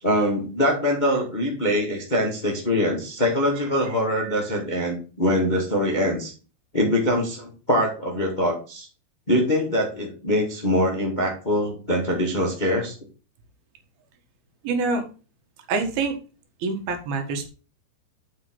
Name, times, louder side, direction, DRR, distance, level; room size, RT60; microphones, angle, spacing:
voice 1, 0.0-6.3 6.7-8.9 9.3-12.9, left 1 dB, 20° left, 0 dB, 1.2 m, -23 dB
voice 2, 14.6-15.0 15.7-16.2 16.6-17.5, right 4 dB, 75° right, 4 dB, 3.4 m, -25 dB
7.8 x 5.6 x 5.3 m, 0.35 s
omnidirectional pair, 4.4 m